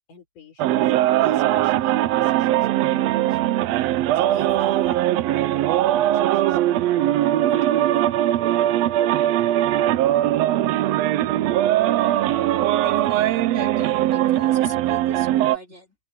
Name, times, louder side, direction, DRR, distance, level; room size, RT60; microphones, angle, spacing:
voice 1, 0.1-0.9 1.2-3.7 4.1-9.3, left 4 dB, 85° left, 7.9 m, -46 dB
sound 1, 0.6-15.6, right 13 dB, 75° right, 1.6 m, -20 dB
voice 2, 12.8-16.0, right 1 dB, 20° right, 4.3 m, -39 dB
open air
omnidirectional pair, 3.5 m